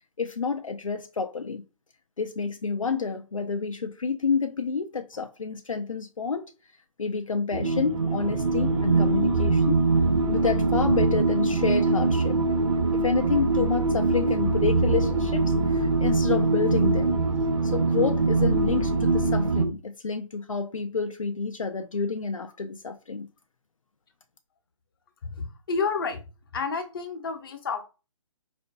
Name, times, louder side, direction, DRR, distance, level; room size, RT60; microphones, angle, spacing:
voice 1, 0.2-1.6 2.2-6.5 7.0-9.8 10.3-12.4 12.9-17.2 17.6-23.3, left 5 dB, 80° left, 0.4 m, -29 dB
sound 1, 7.5-19.7, right 3 dB, 65° right, 0.6 m, -23 dB
voice 2, 25.2-26.2 26.5-27.8, left 4 dB, 45° left, 0.7 m, -30 dB
4.3 x 2.5 x 2.3 m
figure-of-eight pair, 140°, 17 cm